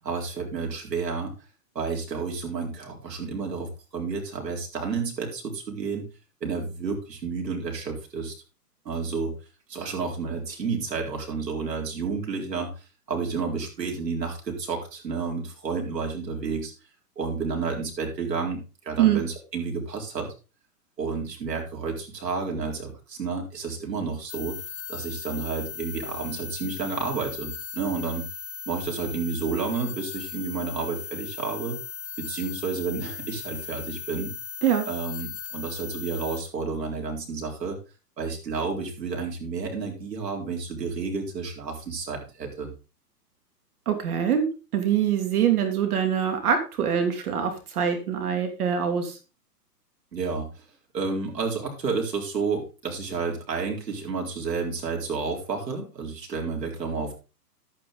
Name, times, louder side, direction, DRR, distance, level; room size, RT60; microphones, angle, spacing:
voice 1, 0.0-1.3 1.7-6.0 6.4-8.3 8.8-9.3 9.7-12.7 13.1-16.7 17.2-18.6 18.8-20.3 21.0-24.6 24.9-28.3 28.7-31.8 32.2-34.3 34.9-37.8 38.2-42.7 50.1-50.5 50.9-57.1, right 4 dB, 80° right, 2 dB, 4.4 m, -30 dB
sound 1, 24.3-36.4, left 6 dB, 45° left, 1.7 m, -38 dB
voice 2, 43.9-44.5 44.7-49.1, right 8 dB, 65° right, 6 dB, 2.8 m, -24 dB
11.5 x 9.1 x 3.9 m, 0.32 s
hypercardioid pair, 130°, 49 cm